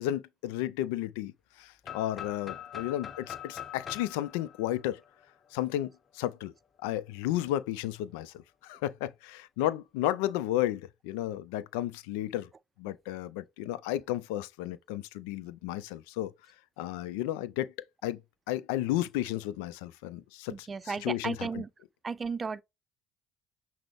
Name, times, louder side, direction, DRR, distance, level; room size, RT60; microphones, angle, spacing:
voice 1, 0.0-1.3 1.6-5.0 5.5-6.5 6.8-8.3 8.6-12.5 12.8-16.3 16.8-17.7 18.0-18.2 18.5-21.6, left 13 dB, 90° left, 0.4 m, -33 dB
sound 1, 1.8-5.7, left 9 dB, 45° left, 0.8 m, -43 dB
voice 2, 20.5-21.7 22.0-22.6, right 5 dB, 35° right, 0.4 m, -34 dB
5.9 x 2.1 x 3.4 m
supercardioid pair, 70°, 0 cm